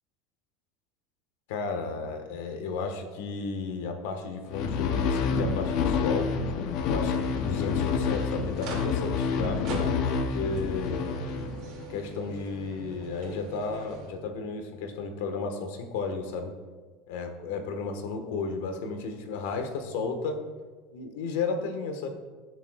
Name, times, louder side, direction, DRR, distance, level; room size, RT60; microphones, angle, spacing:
voice 1, 1.5-6.3 6.8-9.6 10.1-11.1 11.9-16.5 17.1-20.4 20.9-22.1, left 4 dB, 85° left, 6 dB, 1.4 m, -33 dB
sound 1, 4.4-14.1, right 4 dB, 50° right, 2.5 m, -44 dB
sound 2, 4.5-11.9, left 5 dB, 50° left, 0.8 m, -28 dB
20.0 x 7.0 x 2.4 m, 1.4 s
cardioid pair, 160°, 0 cm